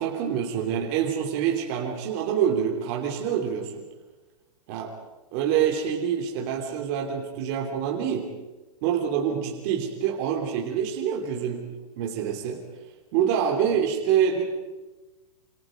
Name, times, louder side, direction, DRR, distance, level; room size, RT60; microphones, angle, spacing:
voice 1, 0.0-3.8 4.7-4.9 5.3-8.3 8.8-12.6 13.1-14.4, right 8 dB, 30° right, 1 dB, 3.3 m, -26 dB
28.5 x 28.0 x 5.2 m, 1.2 s
hypercardioid pair, 170°, 19 cm